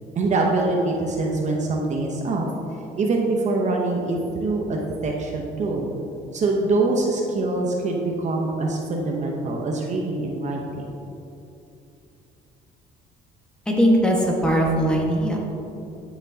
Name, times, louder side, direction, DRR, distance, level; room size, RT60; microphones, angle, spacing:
voice 1, 0.2-2.5 3.0-5.9 6.3-10.9, right 2 dB, 45° right, 0 dB, 0.9 m, -24 dB
voice 2, 13.6-15.4, equal, 5° left, -2 dB, 1.5 m, -20 dB
12.5 x 6.0 x 2.8 m, 2.8 s
cardioid pair, 110°, 17 cm